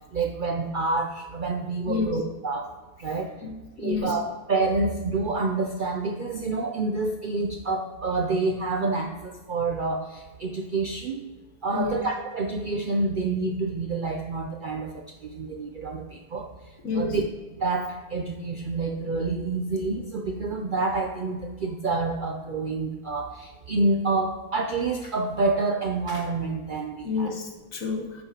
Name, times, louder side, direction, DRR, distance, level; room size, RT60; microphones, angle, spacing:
voice 1, 0.1-2.7 3.0-3.3 3.8-4.2 4.5-11.2 11.6-16.5 17.0-17.2 17.6-27.3, right 3 dB, 60° right, 3 dB, 0.5 m, -28 dB
voice 2, 1.9-2.2 3.4-3.5 3.8-4.2 11.7-12.0 16.8-17.2 27.0-28.2, left 4 dB, 70° left, 2 dB, 1.6 m, -29 dB
8.7 x 7.8 x 2.9 m, 1.2 s
omnidirectional pair, 1.5 m